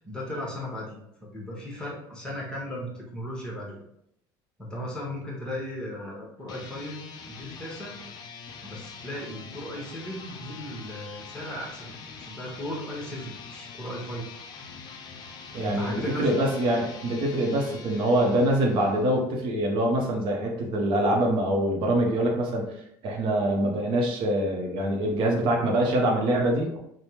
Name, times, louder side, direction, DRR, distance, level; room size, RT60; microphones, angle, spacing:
voice 1, 0.0-3.8 4.6-8.0 8.6-14.3 15.6-16.4, left 1 dB, 10° left, -4 dB, 1.0 m, -36 dB
sound 1, 6.4-19.2, left 5 dB, 45° left, 0.4 m, -44 dB
voice 2, 15.5-26.8, right 1 dB, 60° right, 0 dB, 0.6 m, -24 dB
3.3 x 2.0 x 2.9 m, 0.77 s
supercardioid pair, 110°, 10 cm